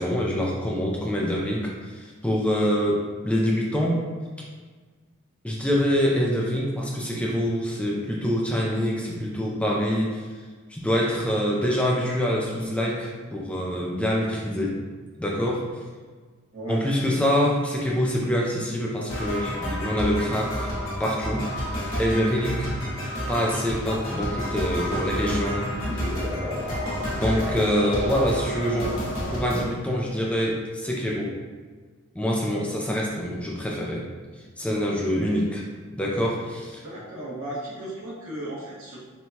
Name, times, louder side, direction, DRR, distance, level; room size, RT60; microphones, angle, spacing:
voice 1, 0.0-4.0 5.4-10.2 10.7-14.8 15.2-15.7 16.7-20.7 21.0-21.5 22.0-22.7 23.3-25.7 27.1-29.0 29.3-31.3 32.2-34.1 34.6-35.6 35.9-36.8, equal, 5° left, -3 dB, 0.3 m, -25 dB
sound 1, 19.1-29.6, equal, 65° left, 1.1 m, -30 dB
sound 2, 24.7-28.7, equal, 40° right, 1.1 m, -36 dB
voice 2, 36.8-39.0, right 1 dB, 70° right, -7 dB, 1.1 m, -35 dB
4.5 x 2.2 x 2.7 m, 1.5 s
head